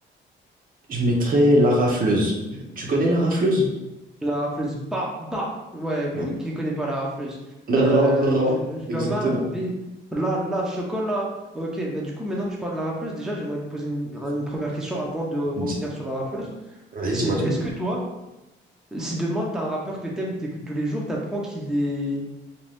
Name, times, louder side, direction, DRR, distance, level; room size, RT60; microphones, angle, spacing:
voice 1, 0.9-2.4 2.8-3.7 6.1-6.2 7.7-8.5 8.9-9.5 15.6-15.7 16.9-17.5, right 1 dB, 45° right, -1 dB, 0.7 m, -21 dB
voice 2, 4.2-7.4 7.7-9.7 10.1-11.3 11.5-16.5 17.1-18.0 18.9-22.2, right 1 dB, ahead, -3 dB, 0.6 m, -28 dB
2.6 x 2.2 x 3.3 m, 0.99 s
cardioid pair, 90°, 20 cm